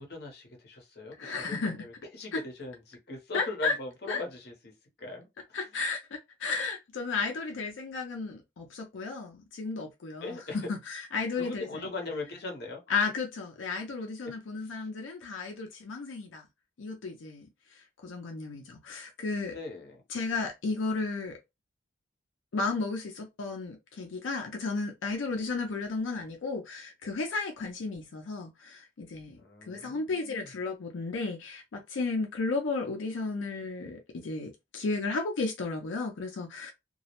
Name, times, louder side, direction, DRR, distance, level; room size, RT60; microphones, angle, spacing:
voice 1, 0.1-4.7 5.0-5.6 10.2-10.7 11.3-12.8 14.6-14.9 19.5-20.0 29.4-30.5, left 2 dB, 55° left, 0.7 m, -40 dB
voice 2, 1.2-1.8 2.3-2.4 3.3-3.7 4.1-4.2 5.5-11.9 12.9-16.4 16.8-19.5 20.1-21.4 22.5-29.4 29.7-36.7, left 4 dB, 85° left, 0.5 m, -33 dB
2.2 x 2.0 x 2.9 m
head